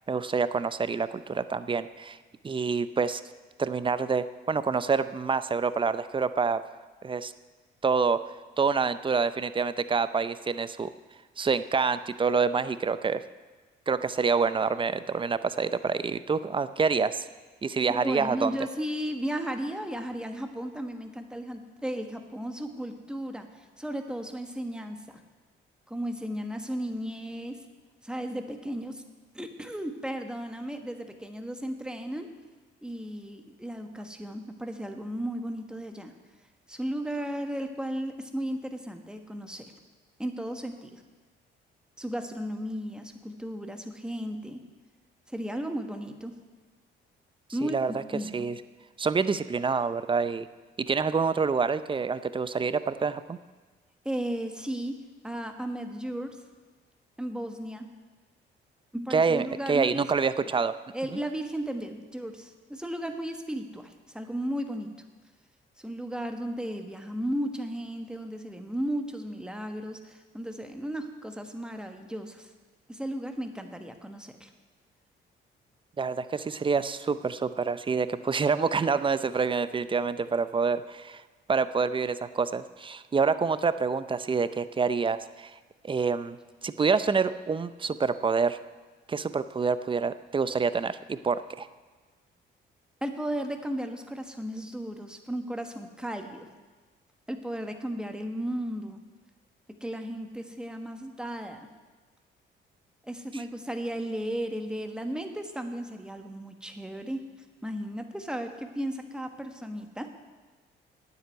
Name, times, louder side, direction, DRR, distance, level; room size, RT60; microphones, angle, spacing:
voice 1, 0.1-2.2 2.4-3.2 3.6-6.6 7.0-7.3 7.8-8.2 8.6-10.9 11.4-13.2 13.9-17.2 17.6-18.5 47.6-47.9 48.3-48.6 49.0-50.5 50.8-53.4 59.1-60.7 61.1-61.2 76.0-81.2 81.5-85.5 85.8-86.4 86.6-88.6 89.1-91.7, right 5 dB, 25° right, 14 dB, 0.5 m, -27 dB
voice 2, 17.9-25.2 25.9-27.6 28.0-29.0 29.3-32.3 32.8-36.1 36.7-39.7 40.2-41.0 42.0-44.6 45.3-46.4 47.5-48.4 54.0-54.9 55.2-56.3 57.2-57.9 58.9-60.1 60.9-64.9 65.8-72.5 72.9-74.5 93.0-96.5 97.3-99.0 99.8-101.7 103.0-107.2 107.6-110.1, right 1 dB, 5° right, 6 dB, 1.3 m, -35 dB
9.5 x 7.8 x 9.3 m, 1.3 s
cardioid pair, 90°, 20 cm